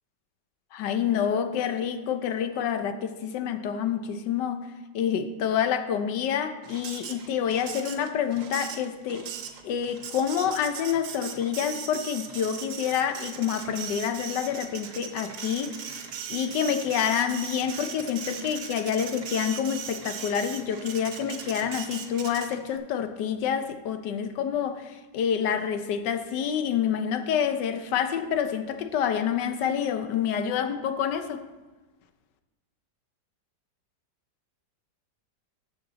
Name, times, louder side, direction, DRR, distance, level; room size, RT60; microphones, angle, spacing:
voice 1, 0.7-4.7 4.9-9.3 9.6-16.0 16.3-31.5, left 8 dB, 75° left, 1.3 m, -28 dB
Printer, 6.6-22.8, right 7 dB, 70° right, 1.4 m, -39 dB
13.0 x 6.7 x 4.0 m
omnidirectional pair, 1.9 m